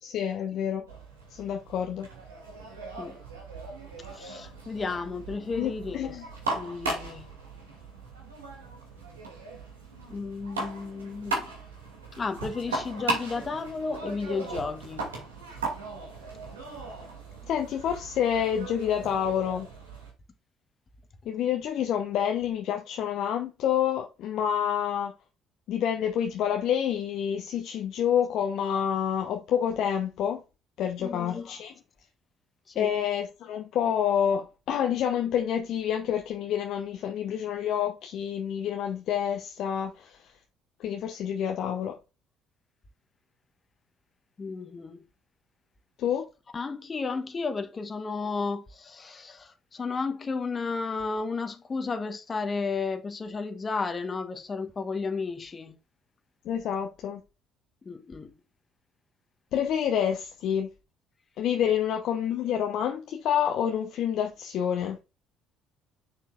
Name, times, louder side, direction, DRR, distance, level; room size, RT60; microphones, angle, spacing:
voice 1, 0.0-0.9 1.3-2.1 5.6-6.2 17.5-19.7 21.2-25.1 25.7-30.4 30.8-31.7 32.8-40.3 40.8-41.9 46.0-46.2 56.4-57.2 59.5-60.7 61.4-65.0, left 9 dB, 60° left, 0.9 m, -28 dB
sound 1, 0.9-20.1, right 2 dB, 85° right, 2.4 m, -38 dB
voice 2, 4.1-6.2 6.5-7.3 10.1-11.5 12.1-15.1 31.0-31.5 32.7-33.0 44.4-45.1 46.5-55.8 57.8-58.4, left 4 dB, 30° left, 1.2 m, -33 dB
7.2 x 6.6 x 2.4 m
figure-of-eight pair, 50°, 0 cm